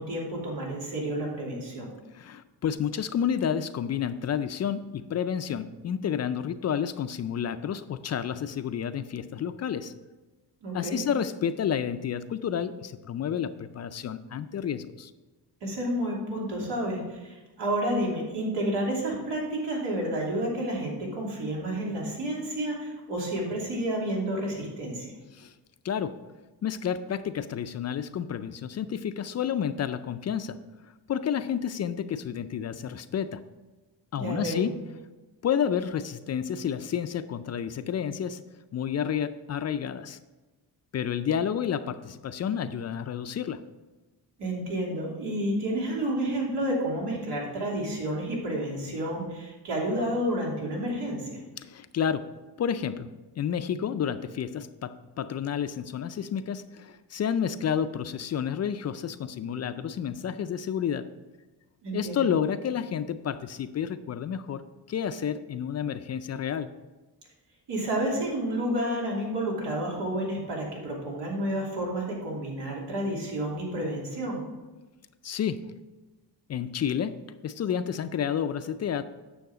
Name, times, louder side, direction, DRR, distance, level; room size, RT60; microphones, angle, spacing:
voice 1, 0.0-1.9 10.6-11.0 15.6-25.1 34.2-34.6 44.4-51.4 61.8-62.3 67.7-74.4, right 1 dB, 85° right, -3 dB, 2.9 m, -30 dB
voice 2, 2.1-9.9 10.7-15.1 25.3-25.5 25.8-26.2 26.6-30.6 31.1-33.4 34.1-34.8 35.4-38.4 38.7-40.2 40.9-43.6 51.6-52.3 52.6-53.1 53.4-61.1 61.9-66.7 75.2-75.6 76.5-77.2 77.4-79.0, left 8 dB, 40° left, 11 dB, 0.4 m, -30 dB
9.4 x 6.5 x 4.9 m, 1.2 s
cardioid pair, 135°, 40 cm